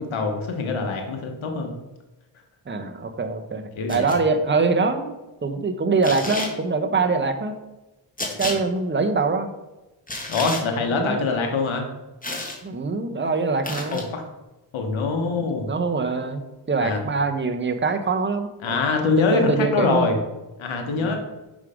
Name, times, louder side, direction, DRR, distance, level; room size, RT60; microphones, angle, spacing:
voice 1, 0.0-1.7 3.8-4.2 10.3-11.8 13.9-14.2 14.7-15.7 16.8-17.0 18.6-20.1 20.6-21.2, left 4 dB, 80° left, 3 dB, 1.3 m, -24 dB
voice 2, 2.7-5.1 5.4-7.6 8.4-9.5 10.9-11.2 12.6-14.0 15.4-16.4 16.7-18.8 19.2-20.1 21.0-21.2, right 4 dB, 25° right, 6 dB, 1.0 m, -24 dB
sound 1, 3.9-4.2 6.0-6.5 8.2-8.6 10.1-10.6 12.2-12.6 13.6-14.0, left 2 dB, 15° left, 1.7 m, -30 dB
6.3 x 5.5 x 5.0 m, 1.0 s
cardioid pair, 70°, 47 cm